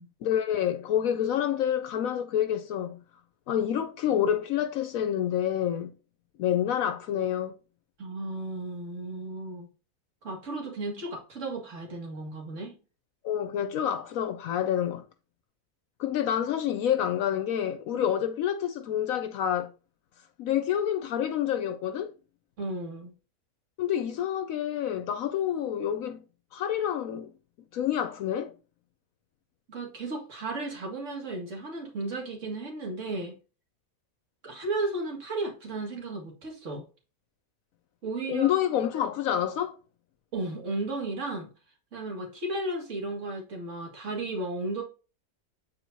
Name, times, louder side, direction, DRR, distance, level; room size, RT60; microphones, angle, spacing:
voice 1, 0.2-3.0 3.5-5.9 6.4-7.5 13.2-15.0 16.0-19.7 20.4-22.1 23.8-26.2 26.5-27.3 27.7-28.5 38.3-39.8, left 10 dB, 75° left, 0.9 m, -28 dB
voice 2, 8.0-9.7 10.2-12.8 22.6-23.1 29.7-33.3 34.4-36.8 38.0-38.5 40.3-41.5 41.9-44.8, right 2 dB, 55° right, 2.2 m, -34 dB
8.1 x 4.5 x 2.7 m
omnidirectional pair, 1.6 m